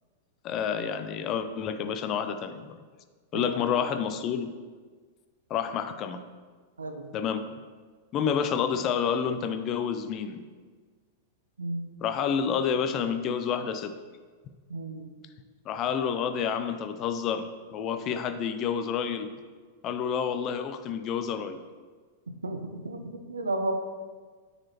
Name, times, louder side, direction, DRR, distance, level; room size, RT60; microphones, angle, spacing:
voice 1, 0.4-2.8 3.3-4.5 5.5-6.2 7.1-7.5 8.1-10.4 12.0-13.9 15.7-19.3 19.8-21.6, left 7 dB, 35° left, 9 dB, 0.5 m, -29 dB
voice 2, 3.3-3.6 6.8-7.1 11.6-11.9 14.7-15.1 22.4-23.7, right 2 dB, 85° right, 6 dB, 0.6 m, -33 dB
8.7 x 4.1 x 2.9 m, 1.5 s
figure-of-eight pair, 100°, 0 cm